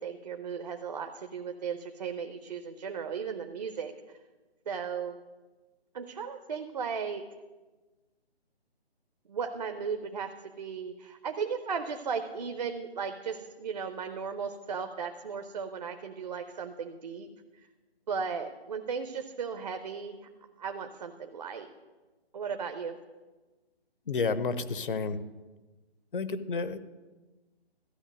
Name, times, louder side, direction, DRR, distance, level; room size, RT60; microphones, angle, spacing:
voice 1, 0.0-3.9 4.7-5.2 5.9-7.2 9.3-10.3 10.6-17.3 18.1-20.3 20.6-21.7 22.3-23.0, right 6 dB, 40° right, 6 dB, 0.8 m, -36 dB
voice 2, 24.1-25.2 26.1-26.8, left 4 dB, 55° left, 13 dB, 0.9 m, -30 dB
13.5 x 5.7 x 9.0 m, 1.2 s
figure-of-eight pair, 155°, 32 cm